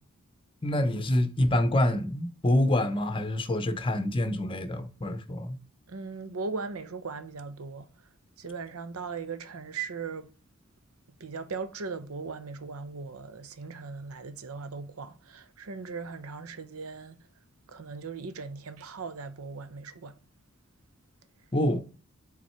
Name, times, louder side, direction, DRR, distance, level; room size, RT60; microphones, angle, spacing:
voice 1, 0.6-5.6 21.5-21.8, left 1 dB, 25° left, 0.8 m, -26 dB
voice 2, 5.9-7.9 8.4-10.3 11.2-17.2 17.7-20.1, right 4 dB, 85° right, 0.8 m, -38 dB
7.5 x 4.0 x 4.4 m
head